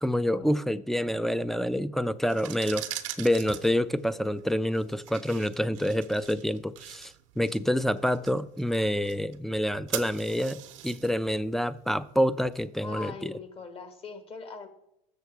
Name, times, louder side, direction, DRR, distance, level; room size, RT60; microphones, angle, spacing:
voice 1, 0.0-2.9 3.2-13.4, equal, ahead, 0.3 m, -27 dB
sound 1, 2.2-13.0, right 13 dB, 85° right, 0.7 m, -43 dB
voice 2, 12.8-14.7, left 4 dB, 35° left, 1.3 m, -41 dB
6.7 x 6.3 x 4.7 m
supercardioid pair, 90°, 16 cm